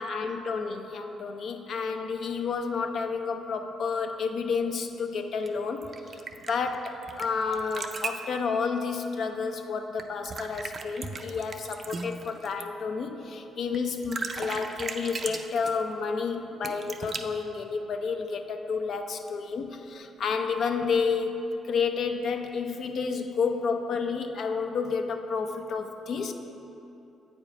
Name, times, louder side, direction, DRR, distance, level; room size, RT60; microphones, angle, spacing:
voice 1, 0.0-21.4 21.6-26.3, left 5 dB, 60° left, 6 dB, 0.6 m, -30 dB
sound 1, 5.5-7.2 7.5-8.3 10.0-12.6 13.7-13.8 14.0-15.8 16.6-17.2, right 4 dB, 40° right, 0.5 m, -37 dB
8.2 x 5.1 x 4.7 m, 2.9 s
cardioid pair, 90°, 0 cm